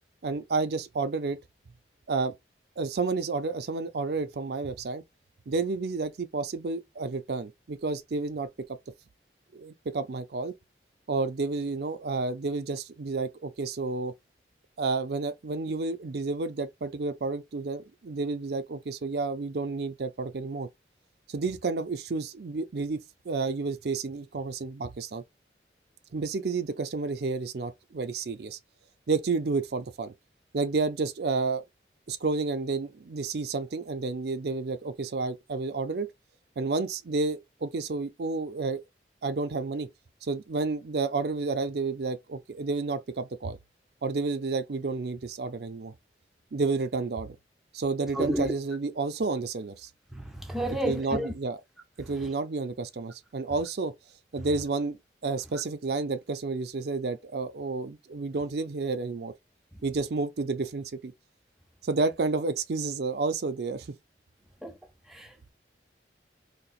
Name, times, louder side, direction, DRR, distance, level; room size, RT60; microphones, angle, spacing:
voice 1, 0.2-1.4 2.1-2.3 2.8-5.0 5.5-8.5 9.5-10.5 11.1-14.1 14.8-20.7 21.3-25.2 26.1-28.6 29.1-30.1 30.5-31.6 32.1-36.1 36.6-38.8 39.2-39.9 40.2-43.6 44.0-45.9 46.5-47.4 47.7-49.9 50.7-51.6 52.0-53.9 54.3-55.0 55.2-59.3 59.8-61.1 61.8-64.0, right 3 dB, 65° right, 0.5 m, -30 dB
voice 2, 48.1-48.5 50.1-51.3 64.6-64.8 65.1-65.5, equal, ahead, 0.7 m, -31 dB
4.2 x 2.9 x 2.4 m
head